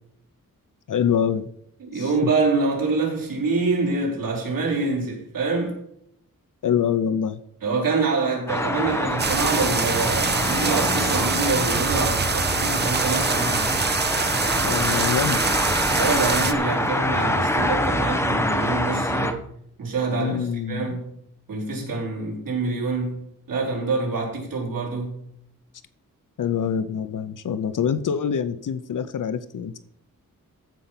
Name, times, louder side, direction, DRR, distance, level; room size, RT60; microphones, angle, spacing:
voice 1, 0.9-1.5 1.9-2.1 6.6-7.4 14.6-15.5 20.1-20.9 21.8-22.0 26.4-29.8, left 8 dB, 70° left, 0.7 m, -25 dB
voice 2, 1.8-5.8 7.6-13.7 15.9-19.4 19.8-21.1 21.5-25.2, right 3 dB, 80° right, 4.3 m, -26 dB
sound 1, 8.5-19.3, left 1 dB, 10° left, 1.2 m, -25 dB
sound 2, 9.2-16.5, right 5 dB, 30° right, 0.7 m, -25 dB
14.5 x 5.7 x 5.8 m
wide cardioid pair, 150°, 33 cm